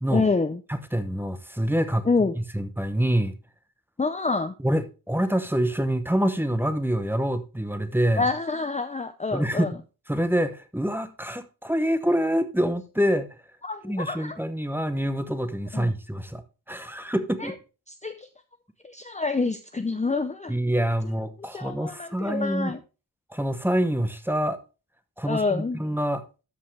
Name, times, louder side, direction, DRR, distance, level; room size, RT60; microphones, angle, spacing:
voice 1, 0.1-0.6 2.1-2.3 4.0-4.5 8.2-9.7 13.6-14.4 15.7-15.9 17.4-17.5 18.0-18.3 18.8-20.5 21.5-22.8 25.3-25.8, left 4 dB, 20° left, 0.5 m, -27 dB
voice 2, 0.7-2.1 2.3-3.3 4.6-8.3 9.3-9.8 10.1-13.3 13.8-17.5 20.5-22.8 23.3-24.6 25.2-26.2, equal, 5° right, 0.9 m, -26 dB
13.0 x 5.5 x 3.3 m
wide cardioid pair, 105°, 37 cm